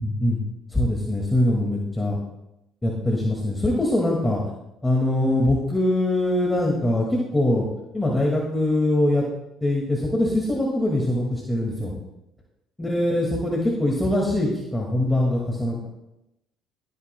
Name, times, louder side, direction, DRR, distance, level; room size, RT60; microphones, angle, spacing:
voice 1, 0.0-0.4 0.7-2.2 2.8-4.4 4.8-7.7 7.9-9.2 9.6-11.9 12.8-15.9, left 1 dB, 10° left, -2 dB, 2.1 m, -22 dB
20.5 x 8.5 x 2.3 m, 0.88 s
supercardioid pair, 80°, 0 cm